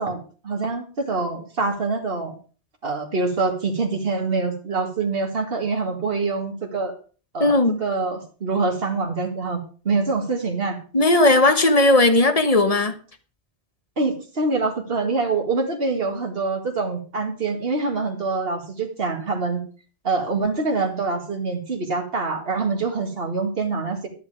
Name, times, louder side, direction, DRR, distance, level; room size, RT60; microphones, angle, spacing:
voice 1, 0.0-2.3 2.8-6.9 7.3-10.8 14.0-19.6 20.0-24.1, right 3 dB, 60° right, 2.3 m, -25 dB
voice 2, 7.4-7.8 10.9-12.9, left 2 dB, 35° left, 1.2 m, -17 dB
11.0 x 9.5 x 4.9 m
omnidirectional pair, 1.1 m